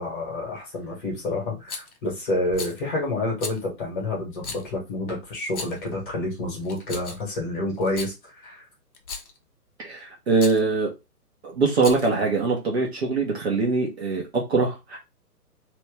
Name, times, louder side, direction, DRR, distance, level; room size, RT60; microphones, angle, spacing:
voice 1, 0.0-8.7, left 2 dB, 30° left, 1.6 m, -29 dB
Rattle, 1.7-2.0 2.5-2.8 3.4-3.6 4.4-4.7 5.4-5.9 6.6-7.3 7.8-8.1 8.9-9.4 10.4-10.6 11.7-12.2, left 4 dB, 65° left, 1.0 m, -36 dB
voice 2, 9.8-10.9 11.4-15.0, right 4 dB, 40° right, 1.0 m, -23 dB
3.1 x 3.0 x 3.3 m
figure-of-eight pair, 135°, 48 cm